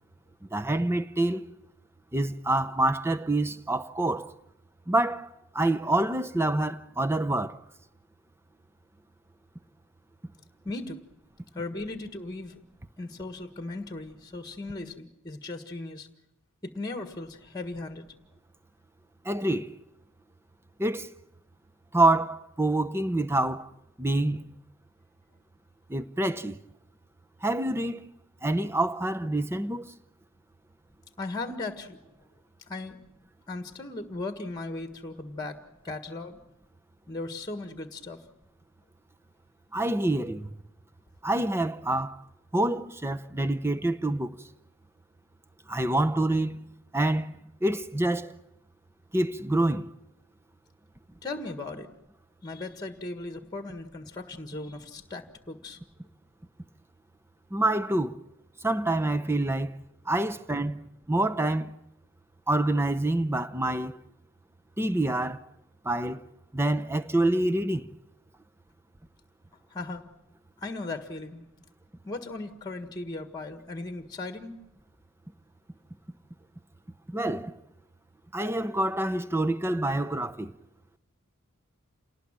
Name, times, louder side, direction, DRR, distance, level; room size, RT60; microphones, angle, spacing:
voice 1, 0.5-1.5 2.1-4.3 4.9-5.3 5.5-7.6 19.2-19.8 20.8-21.1 21.9-23.7 24.0-24.5 25.9-26.6 27.4-28.1 28.4-30.0 39.7-40.5 41.2-42.2 42.5-44.4 45.7-46.7 46.9-48.3 49.1-49.9 57.5-58.2 58.6-59.7 60.1-61.7 62.5-64.0 64.8-65.4 65.8-66.3 66.5-67.9 77.1-77.6 78.3-80.5, right 1 dB, 10° right, 0.8 m, -27 dB
voice 2, 10.6-11.0 11.5-12.6 13.0-16.1 16.6-18.1 31.2-32.0 32.7-33.0 33.5-35.6 35.8-36.4 37.1-38.2 51.2-51.9 52.4-55.8 69.7-70.0 70.6-71.4 72.0-74.5, left 2 dB, 20° left, 1.6 m, -37 dB
28.0 x 18.5 x 7.5 m
head